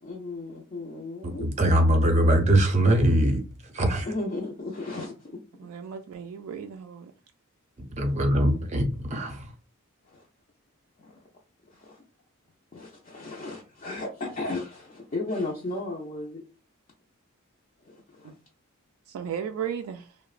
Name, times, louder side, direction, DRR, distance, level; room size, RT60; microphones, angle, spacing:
voice 1, 0.0-1.4 4.0-5.3 10.1-10.2 11.0-11.2 11.7-12.0 12.7-16.4 17.8-18.3, left 2 dB, 35° left, 0.4 m, -35 dB
voice 2, 1.2-4.1 8.0-9.5, right 1 dB, 30° right, 0.5 m, -22 dB
voice 3, 5.6-7.1 18.2-18.3 19.1-20.1, right 8 dB, 85° right, 0.3 m, -35 dB
2.9 x 2.0 x 2.4 m
head